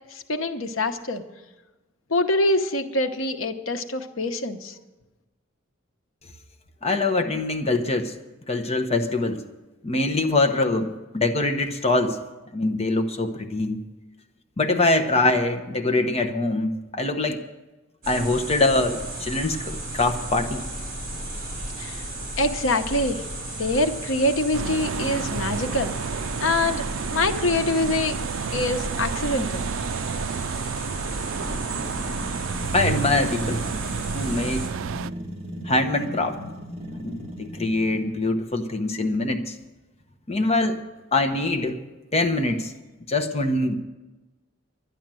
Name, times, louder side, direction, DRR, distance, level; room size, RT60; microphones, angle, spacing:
voice 1, 0.1-1.2 2.1-4.7 21.8-22.0 22.4-23.2 23.6-25.9 26.4-26.9 27.1-28.2 28.5-29.7, left 2 dB, 85° left, 7 dB, 1.0 m, -24 dB
voice 2, 6.8-8.1 8.5-9.4 9.8-12.2 12.5-13.8 14.6-17.4 18.1-20.7 32.7-33.6 34.1-34.6 35.6-36.4 37.0-39.5 40.3-40.8 41.1-41.8 42.1-42.7 43.1-43.8, left 2 dB, 30° left, 7 dB, 1.0 m, -23 dB
sound 1, 18.0-34.7, right 1 dB, 45° right, 4.2 m, -34 dB
sound 2, 24.5-35.1, right 7 dB, 85° right, 0.4 m, -31 dB
sound 3, 31.3-38.1, equal, 30° right, 1.9 m, -37 dB
11.5 x 10.5 x 7.6 m, 1.1 s
head